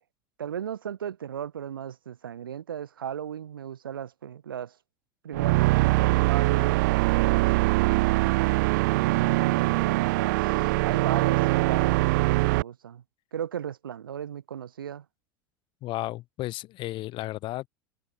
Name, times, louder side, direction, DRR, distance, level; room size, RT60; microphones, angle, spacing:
voice 1, 0.4-4.7 5.2-7.5 8.8-10.5 10.8-13.0 13.3-15.0, right 9 dB, 75° right, 5.0 m, -36 dB
sound 1, 5.3-12.6, right 22 dB, 60° right, 0.9 m, -23 dB
voice 2, 15.8-17.7, left 17 dB, 45° left, 3.3 m, -33 dB
figure-of-eight pair, 75°, 11 cm